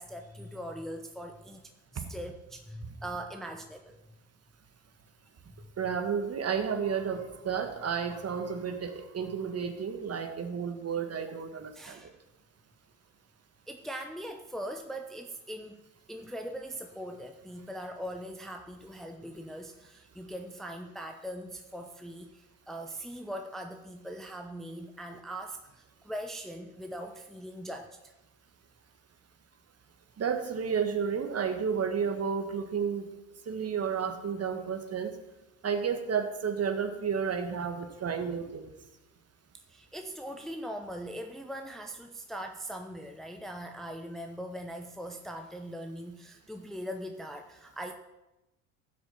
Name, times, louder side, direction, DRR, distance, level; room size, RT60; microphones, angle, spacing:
voice 1, 0.0-1.6 1.9-4.0 11.7-12.1 13.7-15.8 16.1-28.1 39.5-47.9, equal, ahead, 4 dB, 0.9 m, -41 dB
voice 2, 5.8-12.0 30.2-33.1 33.5-35.1 35.6-38.7, right 6 dB, 35° right, 7 dB, 1.7 m, -31 dB
16.0 x 6.2 x 5.8 m, 0.99 s
hypercardioid pair, 65°, 44 cm